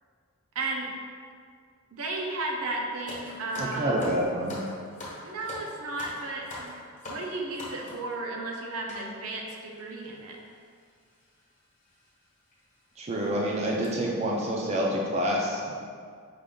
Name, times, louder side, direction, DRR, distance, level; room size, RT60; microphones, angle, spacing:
voice 1, 0.5-0.9 1.9-4.0 5.2-6.7 7.1-10.4, right 2 dB, 80° right, 0 dB, 0.6 m, -34 dB
sound 1, 3.1-8.1 8.9-9.1 9.8-9.9 10.0-10.2 11.2-11.4 11.9-12.0 12.5-12.6 13.0-13.3 13.6-13.9, left 2 dB, 35° left, 1.0 m, -42 dB
voice 2, 3.6-4.6 13.0-15.7, equal, 30° right, -3 dB, 0.4 m, -28 dB
5.0 x 2.5 x 3.6 m, 2.1 s
head